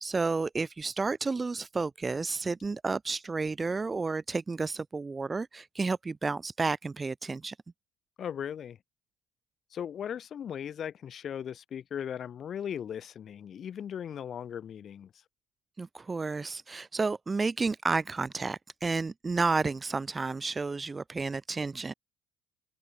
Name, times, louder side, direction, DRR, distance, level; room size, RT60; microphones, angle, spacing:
voice 1, 0.0-7.6 15.8-21.9, right 4 dB, 15° right, 0.6 m, -31 dB
voice 2, 8.2-8.8 9.7-15.2, left 8 dB, 40° left, 2.5 m, -38 dB
open air
cardioid pair, 140°, 0 cm